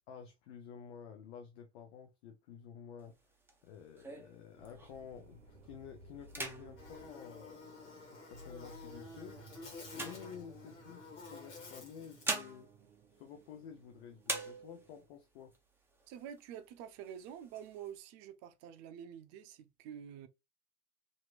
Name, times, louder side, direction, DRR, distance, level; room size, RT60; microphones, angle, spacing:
voice 1, 0.1-3.2 3.6-9.4 9.9-12.7 13.2-15.5, left 7 dB, 65° left, 0.7 m, -51 dB
sound 1, 3.0-5.2 5.6-5.9 6.2-8.1 8.8-11.0 11.8-13.9 14.2-15.1 15.5-15.6 15.9-16.6 17.0-17.9, right 2 dB, 5° right, 0.7 m, -44 dB
sound 2, 4.6-15.0, right 2 dB, 85° right, 0.7 m, -58 dB
Buzz, 6.8-12.4, left 4 dB, 85° left, 1.2 m, -51 dB
voice 2, 16.1-20.3, right 9 dB, 50° right, 0.6 m, -48 dB
2.9 x 2.6 x 2.3 m
hypercardioid pair, 90°, 35 cm